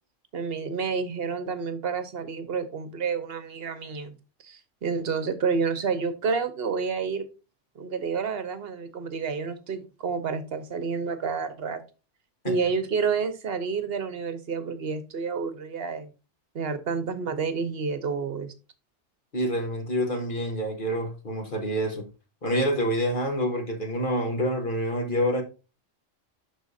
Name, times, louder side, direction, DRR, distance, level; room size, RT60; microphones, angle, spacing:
voice 1, 0.3-4.1 4.4-7.3 7.7-11.8 12.4-16.1 16.5-18.5, right 5 dB, 55° right, 1.1 m, -29 dB
voice 2, 19.3-22.1 22.4-25.4, equal, 45° left, 1.4 m, -27 dB
11.5 x 4.0 x 2.7 m
omnidirectional pair, 1.3 m